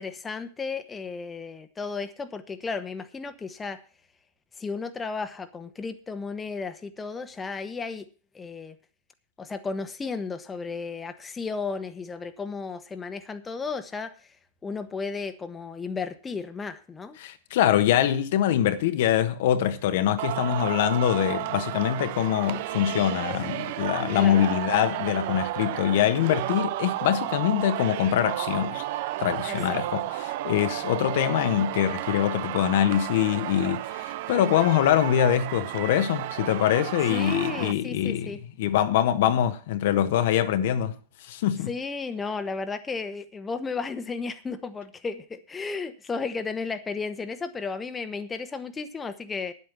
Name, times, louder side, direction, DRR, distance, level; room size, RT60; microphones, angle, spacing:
voice 1, 0.0-3.8 4.6-8.1 8.3-8.8 9.4-14.1 14.6-17.2 24.1-24.5 29.5-29.8 37.1-38.4 41.7-49.5, left 4 dB, 15° left, 1.2 m, -34 dB
voice 2, 17.2-28.8 29.2-38.3 38.6-40.9 41.3-41.7, left 11 dB, 60° left, 1.2 m, -24 dB
Singing, 20.2-37.7, right 15 dB, 55° right, 0.8 m, -32 dB
10.0 x 8.2 x 7.5 m
hypercardioid pair, 100°, 0 cm